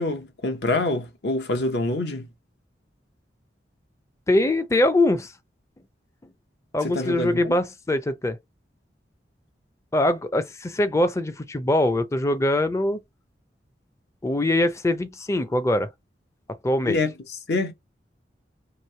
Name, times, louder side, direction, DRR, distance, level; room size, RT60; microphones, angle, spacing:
voice 1, 0.0-2.3 6.8-7.6 16.8-17.7, left 2 dB, 70° left, 0.8 m, -26 dB
voice 2, 4.3-5.3 6.7-8.4 9.9-13.0 14.2-15.9 16.6-17.0, left 1 dB, 15° left, 0.4 m, -22 dB
3.1 x 2.7 x 4.3 m
head